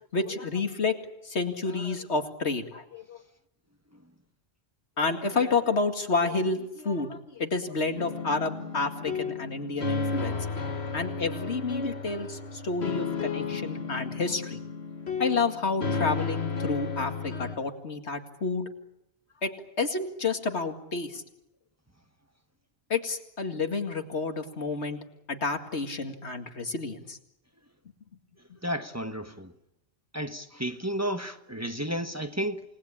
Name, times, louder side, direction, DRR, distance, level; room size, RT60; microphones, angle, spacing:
voice 1, 0.1-3.2 5.0-10.4 10.9-14.6 15.2-18.7 19.4-19.5 19.8-21.2 22.9-25.0 25.3-27.2, left 3 dB, 90° left, 2.5 m, -30 dB
sound 1, 8.0-17.6, left 4 dB, 75° left, 2.0 m, -33 dB
voice 2, 28.6-29.5 30.1-32.6, equal, 15° right, 1.3 m, -32 dB
29.0 x 19.5 x 8.8 m
omnidirectional pair, 1.1 m